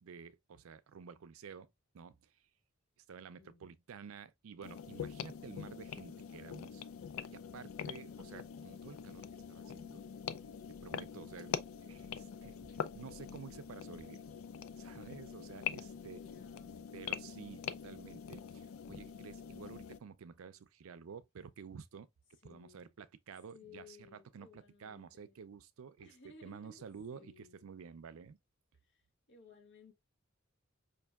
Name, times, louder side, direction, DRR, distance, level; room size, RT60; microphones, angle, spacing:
voice 1, 0.0-1.7 1.9-2.4 3.1-6.9 7.3-10.0 10.7-14.2 14.8-16.2 16.9-22.1 22.4-26.1 26.4-28.4, right 6 dB, 75° right, 0.4 m, -51 dB
sound 1, 4.6-20.0, left 7 dB, 75° left, 0.4 m, -44 dB
voice 2, 16.1-16.9 22.4-22.9 23.5-25.4 26.0-27.7 28.8-29.0 29.3-29.9, left 4 dB, 60° left, 0.9 m, -59 dB
5.3 x 2.6 x 2.3 m
head